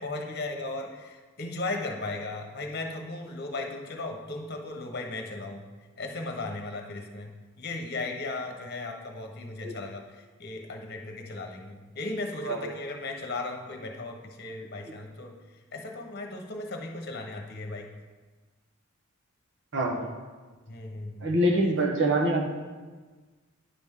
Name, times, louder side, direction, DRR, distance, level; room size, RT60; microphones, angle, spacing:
voice 1, 0.0-5.7 6.0-7.3 7.6-15.4 15.7-17.9 20.7-21.3 21.6-21.7, left 2 dB, 50° left, 3 dB, 1.1 m, -36 dB
voice 2, 19.7-20.1 21.2-22.4, right 1 dB, 60° right, 0 dB, 1.3 m, -25 dB
10.0 x 6.1 x 3.7 m, 1.4 s
head